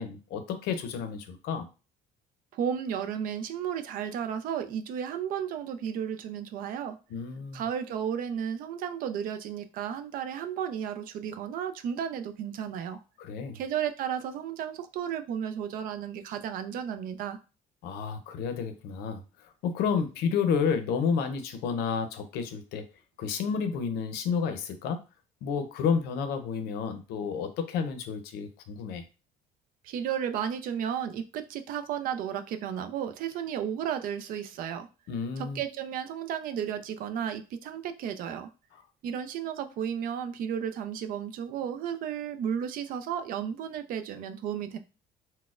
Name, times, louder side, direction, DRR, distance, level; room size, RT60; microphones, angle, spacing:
voice 1, 0.0-1.7 7.1-7.6 13.2-13.6 17.8-19.2 19.6-22.9 23.2-25.0 25.4-29.0 35.1-35.6, left 6 dB, 80° left, 0.6 m, -30 dB
voice 2, 2.5-7.0 7.5-13.0 13.5-17.4 29.8-34.9 35.4-38.5 39.0-44.8, right 8 dB, 60° right, 0.4 m, -33 dB
4.0 x 2.1 x 2.4 m
cardioid pair, 145°, 16 cm